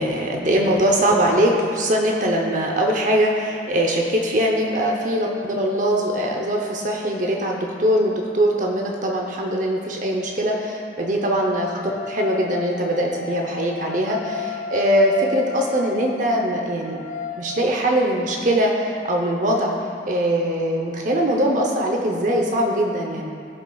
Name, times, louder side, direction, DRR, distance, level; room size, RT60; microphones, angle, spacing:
voice 1, 0.0-17.1 17.4-19.7 20.0-23.3, equal, 40° right, 0 dB, 0.8 m, -21 dB
sound 1, 6.9-8.8 10.8-18.1, left 5 dB, 70° left, 0.7 m, -36 dB
17.5 x 5.9 x 2.4 m, 2.5 s
head